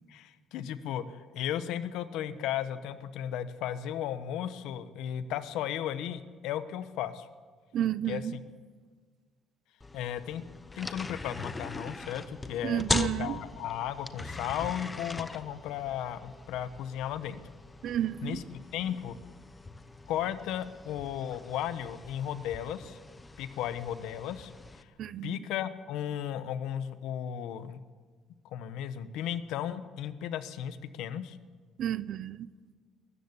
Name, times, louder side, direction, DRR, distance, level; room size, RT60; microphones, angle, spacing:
voice 1, 0.1-7.3 8.1-8.4 9.9-10.5 10.8-17.4 18.2-19.2 20.1-23.0 23.4-24.5 24.8-24.9 25.2-27.8 28.4-31.4, left 10 dB, 85° left, 12 dB, 1.2 m, -35 dB
voice 2, 7.7-8.4 12.6-13.4 17.8-18.4 25.0-25.4 31.8-32.5, right 10 dB, 55° right, 17 dB, 0.7 m, -31 dB
sound 1, 9.8-24.8, left 3 dB, 15° left, 0.9 m, -40 dB
22.0 x 14.0 x 9.9 m, 1.5 s
cardioid pair, 170°, 0 cm